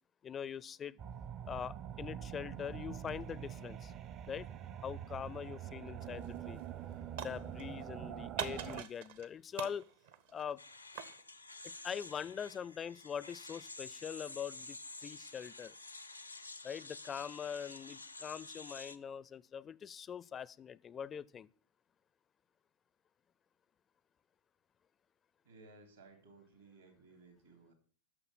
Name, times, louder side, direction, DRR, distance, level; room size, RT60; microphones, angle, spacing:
voice 1, 0.2-1.0 1.5-3.9 4.3-4.5 4.8-6.6 7.2-9.8 10.3-10.6 11.6-15.7 16.6-21.5, left 8 dB, 25° left, 0.4 m, -43 dB
sound 1, 1.0-8.8, right 10 dB, 30° right, 0.5 m, -45 dB
sound 2, 6.0-6.3 6.6-7.9 8.4-9.3 9.6-11.2, right 8 dB, 55° right, 0.9 m, -44 dB
sound 3, 10.6-19.0, left 3 dB, 85° left, 0.6 m, -50 dB
voice 2, 25.4-27.7, right 3 dB, 75° right, 3.4 m, -59 dB
9.8 x 6.7 x 7.2 m
figure-of-eight pair, 90°, 0 cm